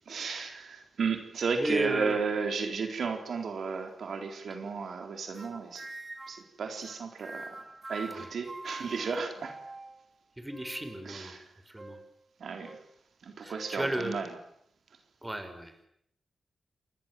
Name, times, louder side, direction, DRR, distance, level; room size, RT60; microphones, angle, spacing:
voice 1, 0.1-5.9 6.3-9.5 11.0-11.5 12.4-12.8 13.2-14.4, right 5 dB, 75° right, 5 dB, 4.1 m, -34 dB
voice 2, 1.6-2.2 8.2-8.3 10.4-11.4 11.7-12.0 13.4-14.2 15.2-15.7, right 1 dB, 15° right, 8 dB, 5.6 m, -33 dB
sound 1, 5.4-6.5 6.8-10.0 10.5-11.1 11.8-12.1 12.6-12.9 13.5-13.8, right 2 dB, 30° right, 1.8 m, -45 dB
29.0 x 20.0 x 7.7 m, 0.72 s
cardioid pair, 60°, 0 cm